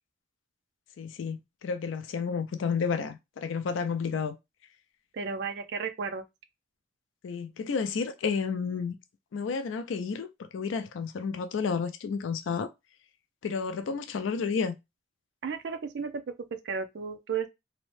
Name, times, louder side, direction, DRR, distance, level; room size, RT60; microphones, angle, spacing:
voice 1, 1.0-4.4 7.2-9.0 9.3-12.7 13.4-14.7, left 5 dB, 90° left, 0.4 m, -31 dB
voice 2, 5.1-6.2 15.4-16.1 16.6-17.5, right 5 dB, 65° right, 0.4 m, -33 dB
2.7 x 2.1 x 3.1 m
head